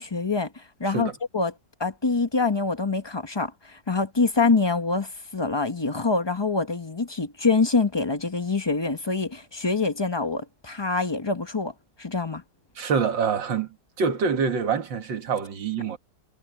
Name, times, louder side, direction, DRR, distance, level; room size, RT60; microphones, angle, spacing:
voice 1, 0.0-1.5 1.8-11.7 12.0-12.4, left 3 dB, 20° left, 0.7 m, -25 dB
voice 2, 12.8-13.7 14.0-16.0, right 6 dB, 90° right, 2.4 m, -25 dB
omnidirectional pair, 2.0 m